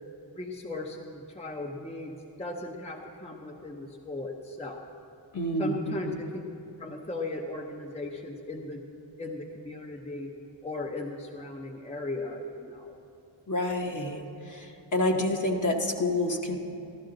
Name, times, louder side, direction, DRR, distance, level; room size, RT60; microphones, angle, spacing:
voice 1, 0.3-4.8 5.6-6.4 6.8-8.8 9.2-10.3 10.6-13.0, left 2 dB, 15° left, 2 dB, 0.7 m, -37 dB
voice 2, 5.3-6.2 13.5-16.6, left 1 dB, 45° left, 1 dB, 1.1 m, -28 dB
13.0 x 13.0 x 3.8 m, 2.8 s
wide cardioid pair, 85°, 44 cm